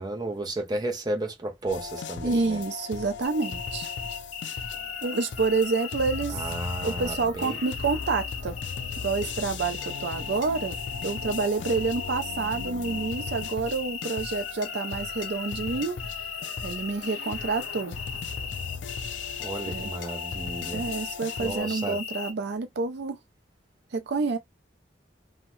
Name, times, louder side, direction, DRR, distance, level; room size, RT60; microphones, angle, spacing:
voice 1, 0.0-2.6 6.3-7.6 19.4-20.8 21.4-22.0, right 2 dB, 20° right, 0.6 m, -33 dB
sound 1, 1.7-21.6, left 5 dB, 75° left, 0.4 m, -38 dB
voice 2, 2.2-3.9 5.0-6.5 6.8-8.6 9.0-10.8 11.0-16.0 16.6-18.0 19.7-19.9 20.7-23.2 23.9-24.4, right 4 dB, 65° right, 0.4 m, -28 dB
sound 2, 3.2-22.3, left 6 dB, 35° left, 0.7 m, -37 dB
2.7 x 2.1 x 3.0 m
head